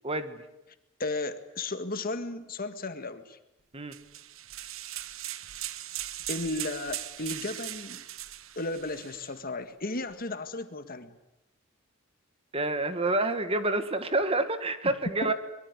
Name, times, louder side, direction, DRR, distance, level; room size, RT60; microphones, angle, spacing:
voice 1, 0.0-0.4 3.7-4.0 12.5-15.3, right 2 dB, 30° right, 10 dB, 1.8 m, -28 dB
voice 2, 1.0-3.4 6.3-8.0 8.6-11.1 15.2-15.3, left 2 dB, 45° left, 9 dB, 1.9 m, -34 dB
sound 1, 3.9-9.3, right 13 dB, 80° right, 1.1 m, -39 dB
24.5 x 22.5 x 9.8 m, 0.91 s
head